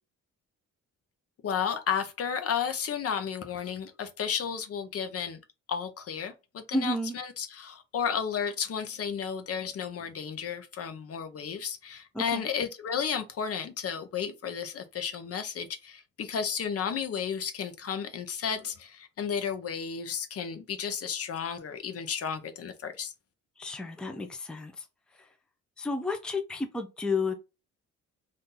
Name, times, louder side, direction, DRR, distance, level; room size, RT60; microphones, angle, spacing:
voice 1, 1.4-5.4 5.7-23.1, left 7 dB, 50° left, 0.7 m, -33 dB
voice 2, 6.7-7.1 12.1-12.5 23.6-24.7 25.8-27.3, left 2 dB, 5° left, 0.5 m, -31 dB
2.7 x 2.6 x 3.7 m
cardioid pair, 90°, 30 cm